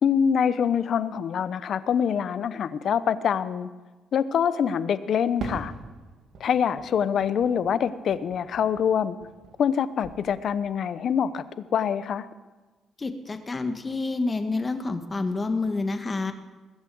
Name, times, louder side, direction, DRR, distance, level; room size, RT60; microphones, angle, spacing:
voice 1, 0.0-3.7 4.1-5.7 6.4-9.2 9.6-11.4 11.7-12.3, left 8 dB, 60° left, 15 dB, 0.8 m, -25 dB
Fireworks, 5.4-9.8 10.0-10.8, right 3 dB, 65° right, 2.6 m, -42 dB
voice 2, 13.0-16.3, left 3 dB, 25° left, 8 dB, 1.6 m, -28 dB
21.0 x 7.6 x 7.8 m, 1.3 s
cardioid pair, 90°, 0 cm